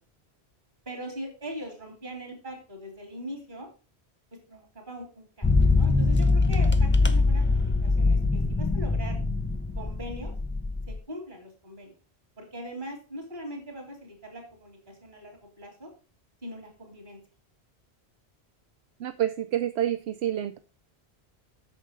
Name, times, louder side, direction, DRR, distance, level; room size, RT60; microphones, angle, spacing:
voice 1, 0.9-3.7 4.5-9.2 9.8-10.3 10.9-12.0 12.4-15.9 16.4-17.2, equal, 50° right, 3 dB, 3.4 m, -41 dB
sound 1, 5.4-11.0, left 3 dB, 15° left, 0.6 m, -23 dB
voice 2, 19.0-20.6, right 11 dB, 80° right, 10 dB, 0.9 m, -28 dB
8.8 x 6.6 x 5.1 m, 0.36 s
omnidirectional pair, 1.1 m